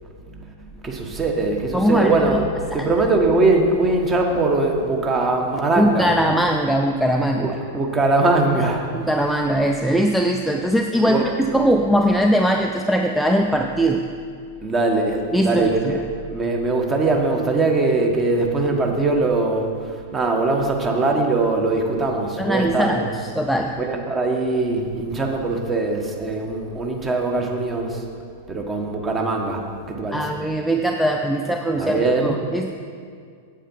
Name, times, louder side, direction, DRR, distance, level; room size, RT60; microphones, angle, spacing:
voice 1, 0.8-2.5 2.7-6.1 7.4-8.9 11.0-11.3 14.6-19.7 20.1-23.1 23.8-28.0 28.5-30.2 31.8-32.4, right 2 dB, 20° right, 2 dB, 1.3 m, -21 dB
voice 2, 1.7-2.4 2.7-2.9 5.8-7.6 8.9-14.0 15.3-15.9 22.4-23.8 30.1-32.7, equal, ahead, 3 dB, 0.5 m, -21 dB
8.9 x 8.1 x 4.6 m, 2.2 s
figure-of-eight pair, 100°, 0 cm